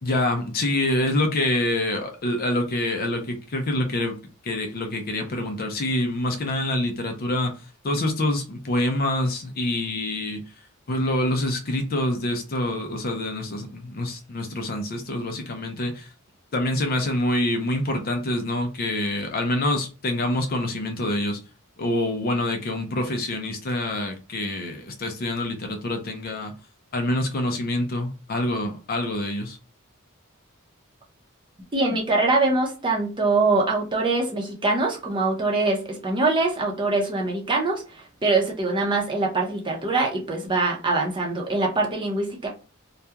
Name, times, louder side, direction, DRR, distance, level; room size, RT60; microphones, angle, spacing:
voice 1, 0.0-4.2 4.4-7.5 7.8-10.4 10.9-16.1 16.5-21.4 21.8-26.5 26.9-29.6, left 1 dB, 45° left, 0.5 m, -26 dB
voice 2, 31.7-42.5, right 3 dB, 25° right, 0.6 m, -23 dB
2.3 x 2.2 x 2.8 m
head